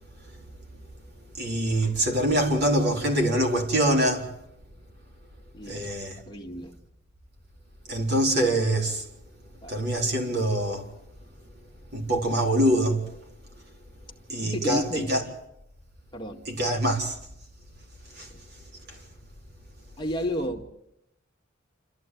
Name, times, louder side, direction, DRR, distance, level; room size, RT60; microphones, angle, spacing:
voice 1, 1.4-4.3 5.7-6.2 7.9-9.0 9.7-10.9 11.9-13.0 14.3-15.2 16.5-17.2 18.1-18.3 18.9-19.0, right 1 dB, 55° right, 4.1 m, -24 dB
voice 2, 5.5-5.9 6.3-6.7 9.6-9.8 14.4-15.1 16.1-16.4 18.3-18.4 20.0-20.6, equal, 25° left, 2.1 m, -31 dB
28.0 x 14.0 x 9.3 m
head